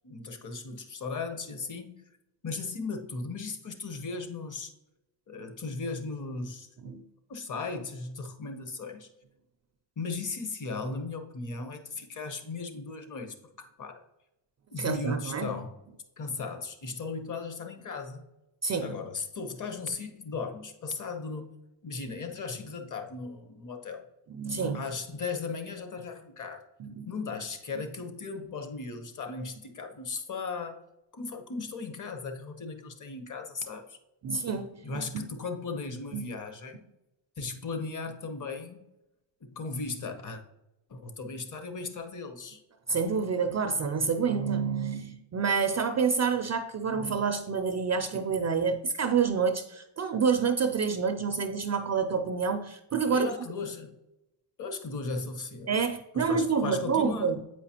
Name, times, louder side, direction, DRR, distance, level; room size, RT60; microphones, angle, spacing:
voice 1, 0.0-2.0 2.4-4.7 5.3-7.0 7.3-9.1 10.0-13.4 13.8-14.0 14.7-15.8 16.2-18.3 18.8-21.5 21.8-24.1 24.7-26.6 27.1-30.8 31.1-34.0 34.8-36.8 37.4-38.8 39.4-40.4 40.9-42.6 53.1-54.0 54.6-55.8 56.1-57.3, left 4 dB, 40° left, 1.0 m, -37 dB
voice 2, 14.8-15.5 18.6-19.0 24.3-24.8 26.8-27.1 34.2-35.3 36.1-36.3 42.9-53.3 55.7-57.4, right 5 dB, 35° right, 0.4 m, -28 dB
8.1 x 4.8 x 2.9 m
cardioid pair, 100°, 48 cm